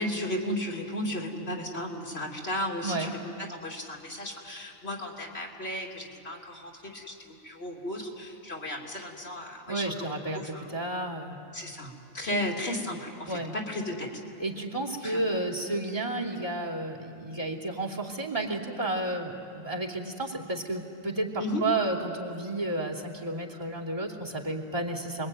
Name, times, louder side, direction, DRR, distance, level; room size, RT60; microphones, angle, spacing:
voice 1, 0.0-9.8 10.3-10.7 11.5-14.1 15.0-15.4 21.4-21.6, left 1 dB, 80° left, -1 dB, 3.2 m, -34 dB
voice 2, 2.8-3.2 9.7-11.4 12.3-12.4 13.3-13.5 14.4-25.3, right 2 dB, 35° right, 0 dB, 3.1 m, -32 dB
29.0 x 22.0 x 9.1 m, 2.6 s
omnidirectional pair, 1.1 m